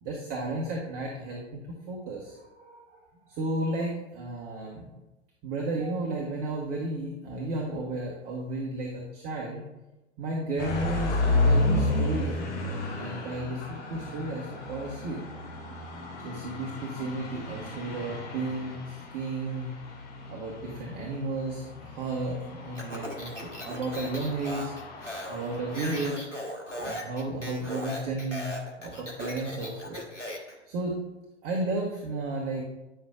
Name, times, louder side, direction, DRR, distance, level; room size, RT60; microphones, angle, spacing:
voice 1, 0.0-3.0 3.3-4.9 5.4-9.6 10.2-11.2 11.4-12.3 12.7-15.2 16.2-19.7 20.3-24.7 25.3-26.2 26.8-28.5 28.8-30.0 30.7-31.0 31.4-32.6, right 2 dB, 30° right, -2 dB, 1.1 m, -33 dB
sound 1, 10.6-26.1, left 2 dB, 25° left, 2.1 m, -32 dB
Speech, 22.7-30.5, equal, 90° left, 1.3 m, -38 dB
9.2 x 5.5 x 2.4 m, 1.0 s
figure-of-eight pair, 100°, 35 cm